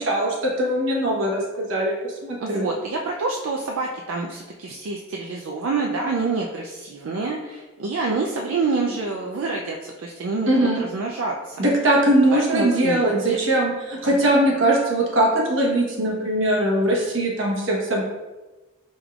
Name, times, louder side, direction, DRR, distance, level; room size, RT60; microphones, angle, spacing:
voice 1, 0.0-1.9 2.2-2.7 10.5-10.8 11.6-18.0, right 1 dB, 70° right, -2 dB, 1.0 m, -21 dB
voice 2, 2.4-11.6 12.3-13.4, right 3 dB, 85° right, 0 dB, 0.4 m, -27 dB
5.1 x 3.5 x 2.3 m, 1.2 s
head